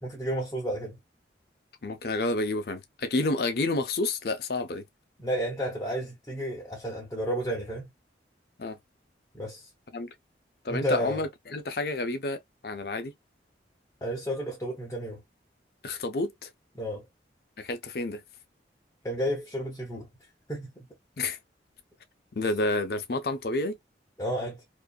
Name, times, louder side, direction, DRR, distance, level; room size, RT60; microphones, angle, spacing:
voice 1, 0.0-0.9 5.2-7.9 9.3-9.7 10.7-11.2 14.0-15.2 16.8-17.0 19.0-20.1 20.5-20.8 24.2-24.6, equal, 15° left, 0.7 m, -32 dB
voice 2, 1.8-4.8 8.6-8.8 9.9-10.1 10.6-13.1 15.8-16.5 17.6-18.2 21.2-21.4 22.3-23.8, left 2 dB, 55° left, 0.5 m, -30 dB
2.6 x 2.5 x 2.2 m
head